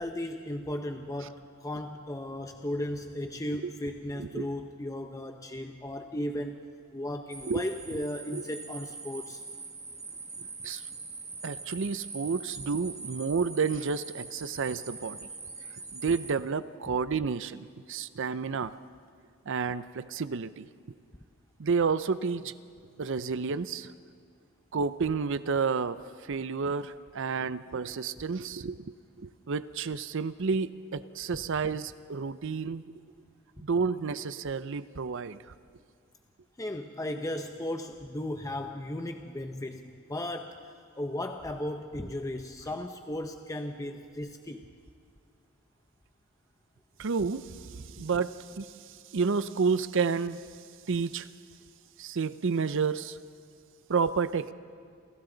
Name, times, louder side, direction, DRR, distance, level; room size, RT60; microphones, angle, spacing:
voice 1, 0.0-6.6 6.9-9.4 36.6-40.6 41.0-44.6, left 1 dB, 15° left, 5 dB, 0.7 m, -36 dB
voice 2, 4.2-4.5 7.5-7.6 8.3-8.4 10.6-10.8 11.4-15.3 15.9-18.7 19.5-20.7 21.6-22.5 23.0-23.9 24.7-32.8 33.6-35.5 47.0-50.4 50.9-51.3 52.0-53.2 53.9-54.5, right 5 dB, 60° right, 14 dB, 0.5 m, -30 dB
sound 1, 7.3-16.3, right 4 dB, 15° right, 1.8 m, -43 dB
29.0 x 28.5 x 3.9 m, 2.1 s
head